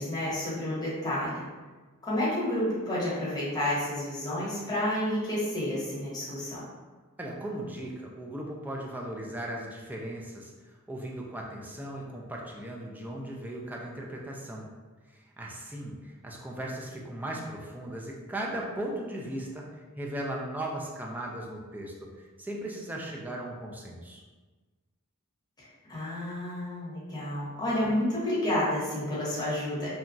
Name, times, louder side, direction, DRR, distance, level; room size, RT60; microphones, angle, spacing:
voice 1, 0.0-1.4 2.0-6.6 25.6-29.9, left 1 dB, 20° left, -8 dB, 1.0 m, -30 dB
voice 2, 7.2-14.7 15.1-24.2, right 1 dB, 10° right, -2 dB, 0.3 m, -37 dB
2.9 x 2.2 x 2.5 m, 1.3 s
head